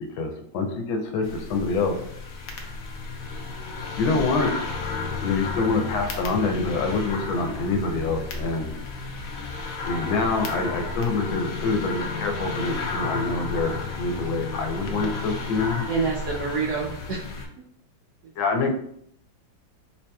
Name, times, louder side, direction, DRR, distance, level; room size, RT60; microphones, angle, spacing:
voice 1, 0.2-1.9 4.0-4.5 5.2-8.8 9.9-15.8 18.4-18.7, left 3 dB, 90° left, 3 dB, 1.4 m, -26 dB
sound 1, 1.2-17.5, left 4 dB, 70° left, 0.8 m, -32 dB
voice 2, 15.9-17.4 18.2-18.7, right 5 dB, 70° right, -3 dB, 1.0 m, -28 dB
4.5 x 2.8 x 2.2 m, 0.69 s
omnidirectional pair, 2.1 m